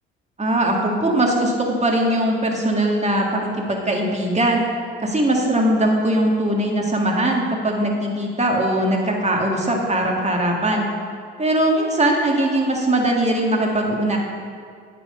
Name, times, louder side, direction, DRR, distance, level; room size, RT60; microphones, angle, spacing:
voice 1, 0.4-4.6 5.0-10.9 11.4-14.2, right 1 dB, 20° right, 0 dB, 1.9 m, -20 dB
8.7 x 6.0 x 5.4 m, 2.2 s
hypercardioid pair, 60°, 31 cm